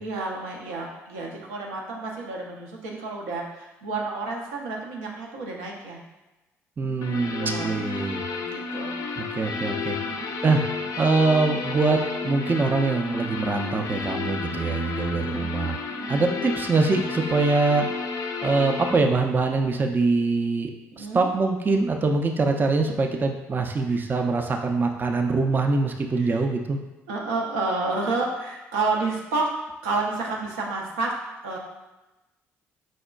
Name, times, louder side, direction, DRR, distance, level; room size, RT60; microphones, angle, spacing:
voice 1, 0.0-6.0 6.8-7.8 8.3-8.9 9.7-10.3 14.5-14.9 15.1-16.4 20.9-21.3 23.9-24.0 26.2-26.3 27.1-29.6 29.8-31.1 31.4-31.6, right 3 dB, 80° right, -1 dB, 0.5 m, -31 dB
voice 2, 6.8-8.2 9.2-10.0 10.4-10.6 11.0-15.8 16.1-17.9 18.4-20.7 21.0-26.8, right 3 dB, 30° right, 3 dB, 0.4 m, -23 dB
sound 1, 7.0-19.0, left 4 dB, 50° left, 0.4 m, -32 dB
5.1 x 2.1 x 2.3 m, 1.1 s
hypercardioid pair, 50°, 7 cm